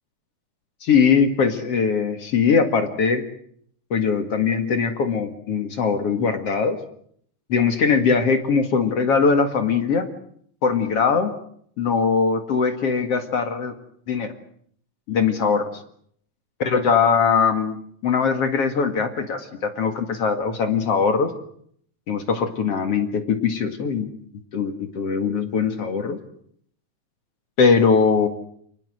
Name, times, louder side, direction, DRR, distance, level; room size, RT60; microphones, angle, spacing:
voice 1, 0.8-3.2 3.9-6.8 7.5-10.1 10.6-11.3 11.8-13.7 14.1-14.3 15.1-15.7 16.6-17.8 18.0-21.3 22.1-24.1 24.5-26.2 27.6-28.3, left 5 dB, 55° left, 7 dB, 2.8 m, -21 dB
30.0 x 20.0 x 7.9 m, 0.66 s
omnidirectional pair, 3.5 m